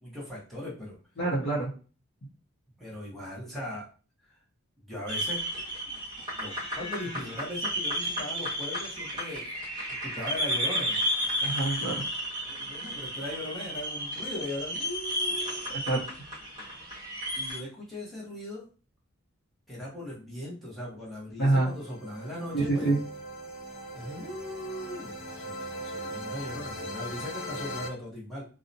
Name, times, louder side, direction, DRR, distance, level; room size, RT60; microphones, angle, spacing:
voice 1, 0.0-0.9 2.8-3.9 4.2-4.4 4.8-6.0 6.3-9.5 10.0-11.0 12.4-15.7 17.3-18.7 19.7-23.0 23.9-28.5, left 1 dB, ahead, -7 dB, 0.7 m, -39 dB
voice 2, 1.2-1.7 11.4-12.0 15.7-16.0 21.4-21.7 22.5-23.0, right 2 dB, 50° left, -6 dB, 0.6 m, -26 dB
sound 1, 5.1-17.6, equal, 20° right, 1.1 m, -33 dB
sound 2, 21.5-27.9, equal, 70° left, 0.9 m, -39 dB
2.7 x 2.0 x 2.6 m, 0.37 s
head